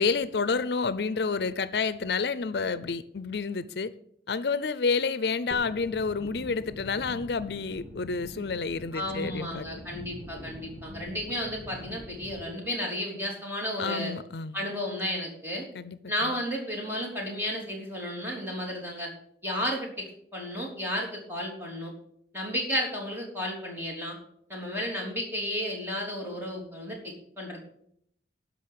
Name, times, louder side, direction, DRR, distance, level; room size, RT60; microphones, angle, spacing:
voice 1, 0.0-3.9 4.3-9.7 13.8-14.6 15.7-16.3, left 4 dB, 70° left, 0.5 m, -29 dB
sound 1, 5.5-12.5, equal, 20° left, 1.8 m, -44 dB
voice 2, 8.9-14.1 14.5-15.6 16.1-19.1 19.4-20.1 20.3-21.9 22.3-24.2 24.5-27.6, equal, 10° right, 3.3 m, -33 dB
12.5 x 5.3 x 8.7 m
head